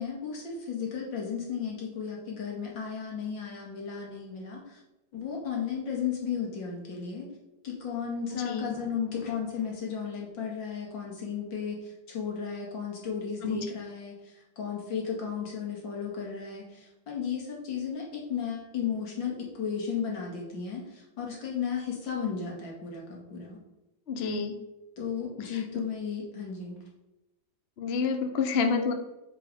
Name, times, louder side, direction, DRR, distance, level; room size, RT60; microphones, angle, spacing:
voice 1, 0.0-4.8 5.1-7.3 7.6-23.6 25.0-26.8, left 7 dB, 75° left, -1 dB, 2.7 m, -34 dB
voice 2, 8.3-8.7 13.4-13.7 24.1-24.6 27.8-28.9, left 5 dB, 50° left, 7 dB, 0.7 m, -28 dB
7.9 x 4.8 x 4.9 m, 0.95 s
omnidirectional pair, 2.0 m